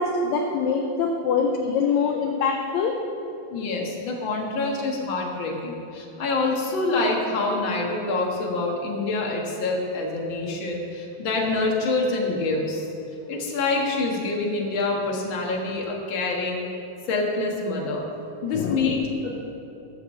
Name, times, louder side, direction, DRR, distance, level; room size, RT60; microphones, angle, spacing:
voice 1, 0.0-3.0 18.5-18.8, left 5 dB, 75° left, 2 dB, 1.7 m, -24 dB
voice 2, 3.5-12.9 13.3-16.7 17.1-18.1 18.4-19.0 19.2-19.4, left 3 dB, 45° left, -1 dB, 2.0 m, -26 dB
13.5 x 6.5 x 7.5 m, 2.9 s
omnidirectional pair, 3.9 m